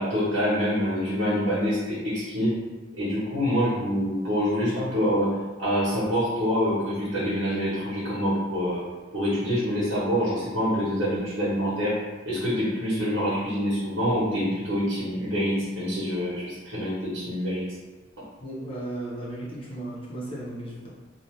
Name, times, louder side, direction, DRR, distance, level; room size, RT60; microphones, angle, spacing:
voice 1, 0.0-2.5 2.9-5.3 5.6-8.8 9.1-12.0 12.3-17.7, equal, 85° right, -11 dB, 1.1 m, -26 dB
voice 2, 18.4-20.9, right 1 dB, 30° left, -6 dB, 0.8 m, -35 dB
2.6 x 2.3 x 3.1 m, 1.2 s
head